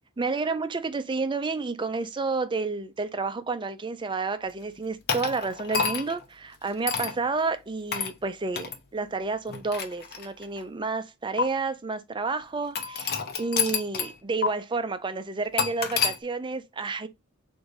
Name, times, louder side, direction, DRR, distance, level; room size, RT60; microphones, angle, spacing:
voice 1, 0.2-17.1, right 4 dB, 20° right, 0.4 m, -30 dB
sound 1, 5.1-6.2 6.9-7.2 7.9-8.1 8.6-8.8 9.5-10.6 11.4-11.5 12.8-14.2 14.4-14.5 15.6-16.2, left 6 dB, 45° left, 0.7 m, -28 dB
3.8 x 2.6 x 4.7 m
head